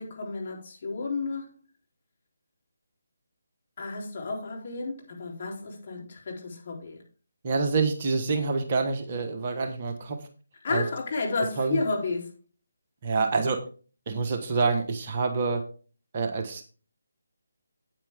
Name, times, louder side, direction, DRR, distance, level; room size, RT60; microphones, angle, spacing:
voice 1, 0.0-1.5 3.8-7.0 10.6-12.3, left 3 dB, 45° left, 3.6 m, -32 dB
voice 2, 7.4-10.3 10.7-10.9 11.6-11.8 13.0-13.6 14.1-15.6 16.1-16.6, right 4 dB, 35° right, 1.3 m, -27 dB
8.9 x 8.6 x 3.6 m
figure-of-eight pair, 150°, 0 cm